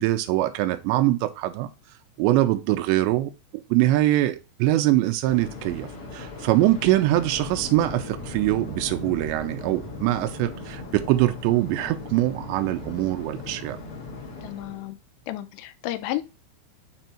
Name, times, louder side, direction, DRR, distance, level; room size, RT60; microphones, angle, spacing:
voice 1, 0.0-1.7 2.2-3.3 3.7-13.8, right 15 dB, 85° right, 2.8 m, -23 dB
Waves surf, 5.2-14.9, left 3 dB, 50° left, 1.7 m, -38 dB
voice 2, 14.4-15.0 15.3-16.2, left 14 dB, 80° left, 2.9 m, -32 dB
6.9 x 3.4 x 4.3 m
omnidirectional pair, 5.1 m